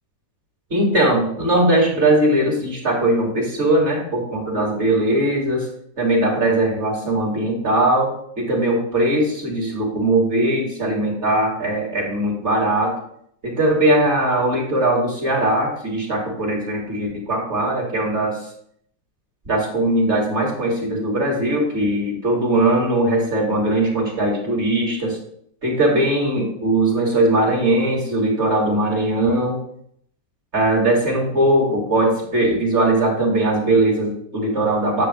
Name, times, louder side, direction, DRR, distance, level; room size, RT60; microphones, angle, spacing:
voice 1, 0.7-5.7 6.0-12.9 13.4-18.3 19.4-25.2 25.6-29.6 30.5-35.1, right 1 dB, 35° right, -2 dB, 2.9 m, -20 dB
10.0 x 7.7 x 3.4 m, 0.68 s
omnidirectional pair, 2.0 m